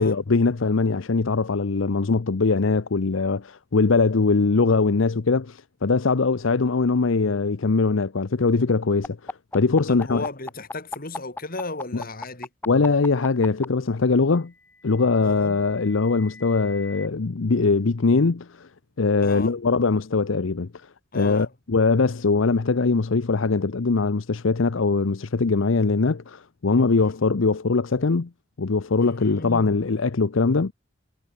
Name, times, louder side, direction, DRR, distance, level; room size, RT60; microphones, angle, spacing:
voice 1, 0.0-10.3 11.9-12.0 12.7-14.5 14.8-18.7 19.0-20.7 21.1-28.3 28.6-30.7, left 4 dB, 80° left, 0.7 m, -22 dB
sound 1, 9.0-13.7 14.8-17.1, left 2 dB, 10° left, 0.4 m, -37 dB
voice 2, 9.9-12.5 15.2-15.6 19.2-19.6 21.1-21.5 27.0-27.1 29.0-29.8, left 2 dB, 45° left, 3.7 m, -35 dB
head